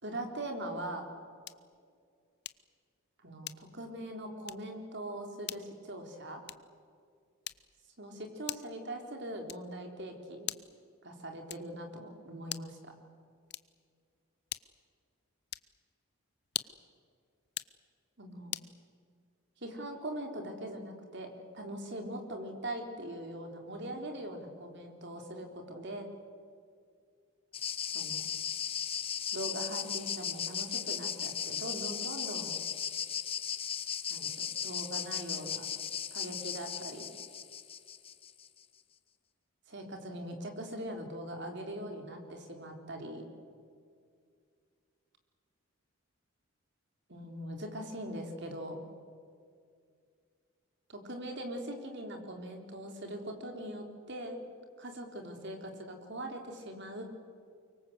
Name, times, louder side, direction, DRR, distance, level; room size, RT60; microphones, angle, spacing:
voice 1, 0.0-1.1 3.2-6.4 8.0-8.1 8.4-10.5 11.0-12.9 18.2-18.6 19.6-26.1 27.9-28.2 29.3-32.6 34.1-35.7 36.1-37.1 39.7-43.3 47.1-48.8 50.9-54.4 54.8-57.1, right 1 dB, 50° right, 3 dB, 3.8 m, -41 dB
sound 1, 1.4-1.8 2.4-2.8 3.4-3.9 4.4-4.7 5.4-5.7 6.4-6.8 7.4-7.9 8.5-8.8 9.5-9.8 10.4-10.8 11.5-11.8 12.4-12.8 13.5-13.9 14.5-14.9 15.5-15.8 16.4-16.9 17.4-17.8 18.5-18.8, left 13 dB, 50° left, 0.7 m, -42 dB
sound 2, 27.5-38.5, left 8 dB, 25° left, 0.9 m, -37 dB
24.5 x 24.0 x 8.0 m, 2.2 s
head